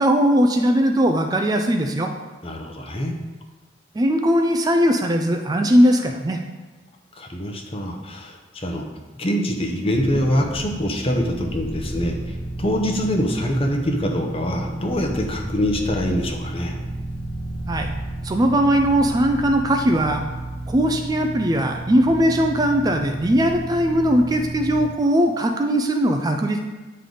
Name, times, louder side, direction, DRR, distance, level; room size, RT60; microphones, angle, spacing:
voice 1, 0.0-2.1 3.9-6.4 17.7-17.9 18.2-20.2 20.7-26.6, equal, 20° right, 4 dB, 0.3 m, -19 dB
voice 2, 2.4-3.1 7.2-8.8 9.1-16.8, equal, 30° left, 2 dB, 0.7 m, -24 dB
sound 1, 9.9-24.8, right 1 dB, 80° left, 1.4 m, -32 dB
9.0 x 3.3 x 3.9 m, 1.2 s
head